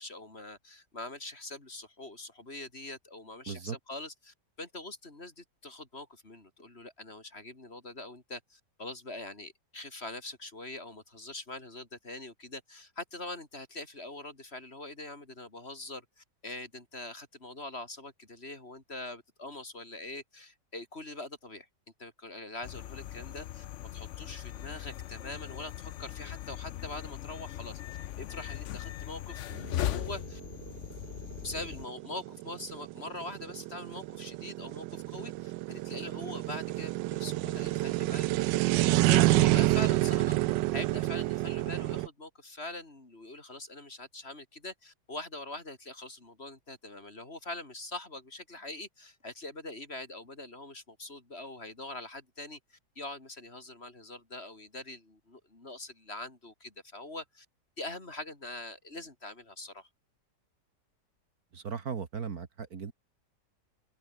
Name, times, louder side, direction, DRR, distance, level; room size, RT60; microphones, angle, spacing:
voice 1, 0.0-21.7 22.0-23.7 23.9-27.8 28.2-30.4 31.4-40.4 40.7-57.5 57.8-59.9, left 2 dB, 35° left, 3.8 m, -43 dB
voice 2, 3.5-3.8 61.5-62.9, right 6 dB, 60° right, 2.1 m, -37 dB
sound 1, 22.6-31.9, left 12 dB, 65° left, 0.7 m, -39 dB
sound 2, 29.6-42.1, right 17 dB, 90° right, 1.2 m, -28 dB
open air
omnidirectional pair, 1.9 m